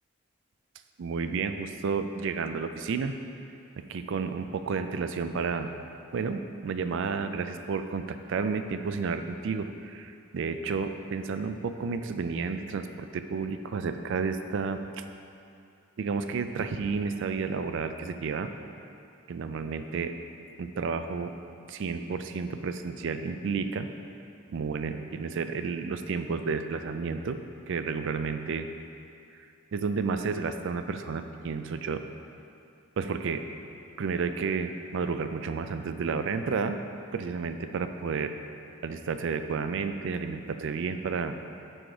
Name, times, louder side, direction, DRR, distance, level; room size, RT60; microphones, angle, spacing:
voice 1, 1.0-3.1 3.9-5.7 6.1-15.0 16.0-18.5 19.3-20.1 20.6-21.3 21.7-23.9 24.5-27.4 27.7-28.7 29.7-32.0 33.0-33.4 34.0-36.8 37.1-38.3 38.8-41.4, right 5 dB, 65° right, 8 dB, 0.4 m, -31 dB
6.3 x 4.6 x 4.9 m, 2.5 s
head